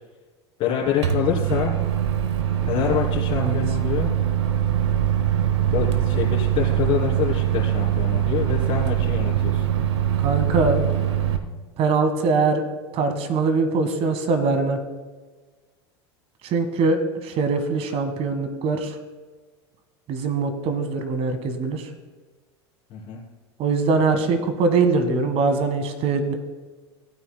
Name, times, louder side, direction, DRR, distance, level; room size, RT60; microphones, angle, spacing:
voice 1, 0.6-1.7 2.6-4.1 5.7-9.6 22.9-23.2, left 9 dB, 45° left, -7 dB, 2.8 m, -26 dB
Microwave oven, 1.0-11.4, right 11 dB, 75° right, 0.9 m, -22 dB
voice 2, 10.2-10.8 11.8-12.7 12.9-14.8 16.4-19.0 20.1-21.9 23.6-26.3, right 4 dB, 45° right, 8 dB, 1.5 m, -22 dB
16.0 x 9.3 x 2.2 m, 1.3 s
hypercardioid pair, 85°, 14 cm